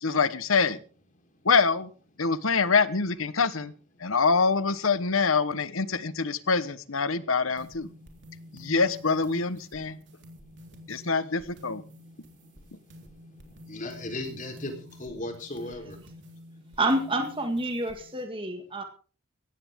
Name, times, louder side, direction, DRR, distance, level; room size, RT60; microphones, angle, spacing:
voice 1, 0.0-0.8 1.4-1.9 2.2-3.7 4.0-7.9 8.5-10.0 10.9-11.8, left 4 dB, 75° left, 15 dB, 1.2 m, -25 dB
sound 1, 7.6-18.2, left 1 dB, 55° right, 3.7 m, -50 dB
voice 2, 13.4-16.0, left 1 dB, 40° left, 4 dB, 3.9 m, -37 dB
voice 3, 16.8-18.8, right 1 dB, 25° right, 5 dB, 1.9 m, -28 dB
17.5 x 15.0 x 3.7 m, 0.39 s
head